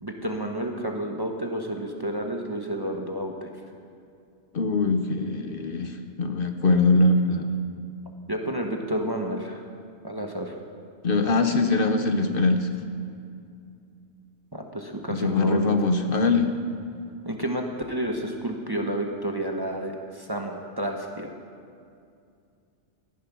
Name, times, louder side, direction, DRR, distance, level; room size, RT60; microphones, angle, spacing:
voice 1, 0.0-3.5 8.3-9.6 10.0-10.6 14.5-15.7 17.2-21.3, right 1 dB, 20° right, 2 dB, 0.9 m, -30 dB
voice 2, 4.5-7.6 11.0-12.7 15.1-16.5, left 3 dB, 50° left, 6 dB, 0.9 m, -22 dB
14.0 x 10.5 x 6.1 m, 2.4 s
omnidirectional pair, 1.2 m